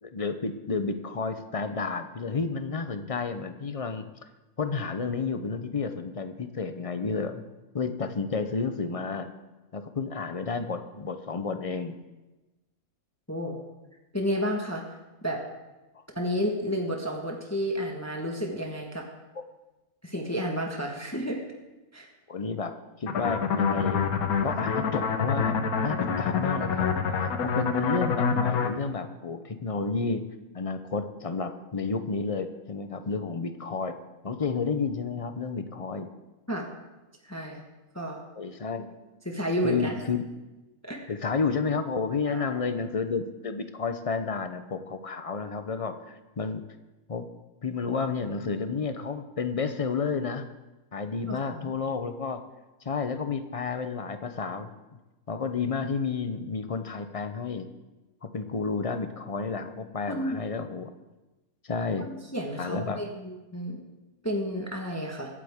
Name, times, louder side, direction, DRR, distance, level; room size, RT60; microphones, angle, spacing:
voice 1, 0.0-4.1 4.6-7.4 7.7-9.3 9.7-12.0 22.3-22.7 23.0-24.1 24.4-30.2 30.5-33.9 34.2-36.1 38.4-39.0 39.6-40.2 41.1-46.6 47.1-47.3 47.6-50.4 50.9-52.4 52.8-54.7 55.3-57.7 58.2-60.9 61.6-62.1 62.6-63.0, left 4 dB, 35° left, 8 dB, 0.6 m, -31 dB
voice 2, 14.1-14.8 15.2-15.4 16.1-19.0 20.0-21.4 21.9-22.1 36.5-36.7 37.2-37.6 37.9-38.2 39.2-39.9 40.8-41.0 42.3-42.5 51.3-51.7 60.1-60.4 62.0-63.8 64.2-65.3, equal, 10° left, 1 dB, 1.3 m, -31 dB
sound 1, 23.1-28.7, left 6 dB, 80° left, 1.4 m, -27 dB
24.0 x 8.4 x 3.6 m, 1.1 s
omnidirectional pair, 1.5 m